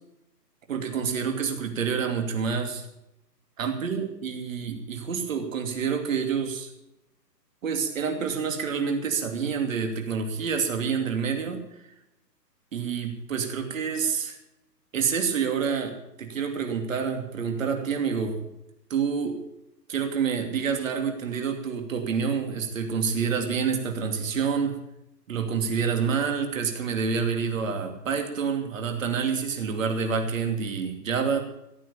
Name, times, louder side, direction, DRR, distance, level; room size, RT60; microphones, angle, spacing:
voice 1, 0.7-2.8 3.6-6.7 7.6-11.6 12.7-14.4 14.9-18.4 18.9-19.4 19.9-24.8 25.3-31.4, right 6 dB, 50° right, 5 dB, 2.8 m, -28 dB
14.5 x 10.5 x 7.0 m, 0.87 s
hypercardioid pair, 155°, 50 cm